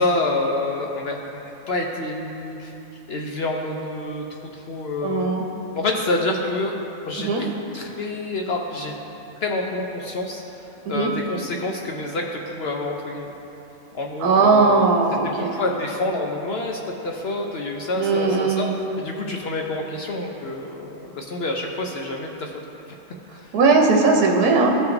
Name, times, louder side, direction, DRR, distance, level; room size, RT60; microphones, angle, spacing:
voice 1, 0.0-2.7 3.1-4.2 4.5-5.4 5.7-6.7 7.0-7.5 7.7-8.9 9.4-10.4 10.9-13.3 13.9-14.9 15.4-18.7 19.0-22.5 23.3-23.5, left 2 dB, 60° left, 0 dB, 0.7 m, -27 dB
voice 2, 5.0-5.4 7.2-7.4 10.9-11.1 14.2-15.5 18.0-18.8 23.5-24.8, right 4 dB, 85° right, 1 dB, 1.2 m, -18 dB
14.0 x 5.8 x 2.6 m, 3.0 s
omnidirectional pair, 1.6 m